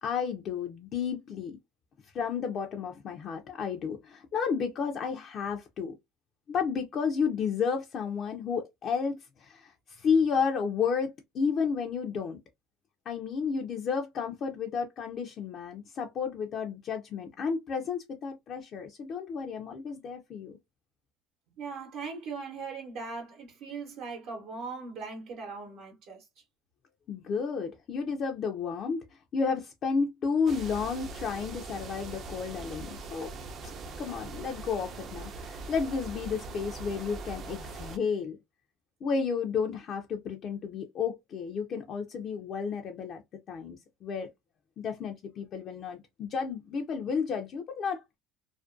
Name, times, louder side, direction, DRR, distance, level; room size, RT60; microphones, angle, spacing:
voice 1, 0.0-1.6 2.1-6.0 6.5-12.4 13.1-20.6 27.1-33.3 34.0-38.4 39.0-43.2 43.5-44.3 44.8-48.0, left 6 dB, 50° left, 0.4 m, -32 dB
voice 2, 21.6-26.2, right 4 dB, 65° right, 0.8 m, -39 dB
sound 1, 30.5-38.0, right 3 dB, 45° right, 0.5 m, -41 dB
2.4 x 2.1 x 2.4 m
supercardioid pair, 105°, 0 cm